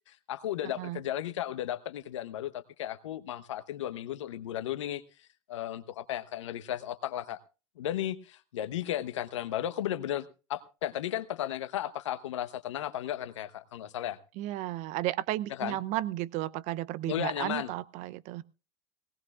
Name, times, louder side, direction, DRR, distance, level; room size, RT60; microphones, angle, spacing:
voice 1, 0.1-5.0 5.5-7.4 7.8-14.2 15.6-15.8 17.1-17.7, left 12 dB, 75° left, 13 dB, 1.0 m, -35 dB
voice 2, 14.4-18.4, right 15 dB, 50° right, 18 dB, 0.6 m, -33 dB
18.5 x 18.0 x 2.4 m, 0.32 s
hypercardioid pair, 90°, 16 cm